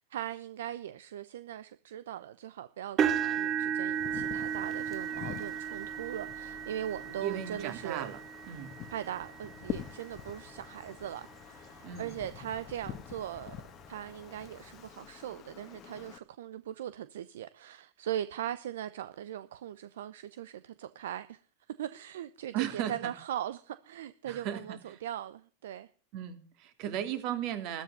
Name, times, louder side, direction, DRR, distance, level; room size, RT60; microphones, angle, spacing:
voice 1, 0.0-8.1 8.9-13.6 13.9-21.4 21.8-25.9, right 11 dB, 75° right, 0.7 m, -40 dB
sound 1, 3.0-11.0 11.6-11.9 12.3-12.4 13.8-13.9, right 9 dB, 35° right, 1.2 m, -35 dB
Wind, 3.9-16.2, left 11 dB, 40° left, 1.3 m, -46 dB
voice 2, 7.2-8.8 11.8-12.1 22.5-23.1 24.2-25.0 26.1-27.8, right 10 dB, 50° right, 2.7 m, -36 dB
13.0 x 13.0 x 6.9 m
hypercardioid pair, 100°, 0 cm